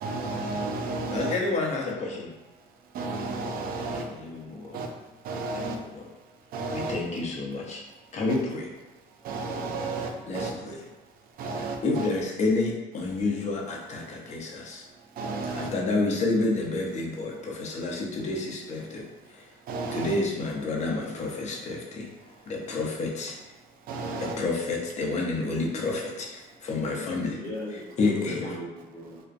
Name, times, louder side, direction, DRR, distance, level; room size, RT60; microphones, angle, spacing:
voice 1, 0.0-1.3 2.9-4.1 4.7-4.9 5.2-5.8 6.5-6.9 9.2-10.5 11.4-12.1 15.2-15.7 19.7-20.1 23.9-24.4, right 3 dB, 60° right, 3 dB, 0.4 m, -32 dB
voice 2, 1.1-2.3 3.8-4.8 5.5-6.1 6.7-7.8 8.1-8.7 10.0-10.8 11.5-14.8 15.6-19.4 19.9-22.1 22.5-23.3 24.1-27.4 28.0-28.5, left 3 dB, 45° left, -1 dB, 0.6 m, -30 dB
voice 3, 26.8-29.2, left 1 dB, 15° left, -8 dB, 1.1 m, -38 dB
2.4 x 2.1 x 2.5 m, 1.1 s
cardioid pair, 110°, 17 cm